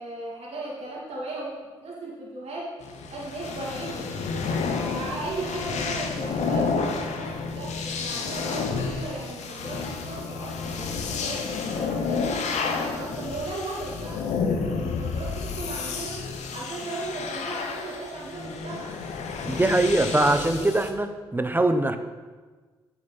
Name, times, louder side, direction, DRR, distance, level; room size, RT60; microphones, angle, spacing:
voice 1, 0.0-1.5 1.8-2.7 3.1-4.1 4.8-12.2 12.5-14.3 14.6-16.2 16.5-18.9 20.1-20.7, right 2 dB, 60° right, -5 dB, 2.9 m, -36 dB
sound 1, 2.8-20.9, left 4 dB, 70° left, 1.0 m, -30 dB
voice 2, 19.4-22.0, right 2 dB, 15° right, 8 dB, 0.9 m, -22 dB
8.7 x 7.2 x 4.2 m, 1.4 s
hypercardioid pair, 45°, 12 cm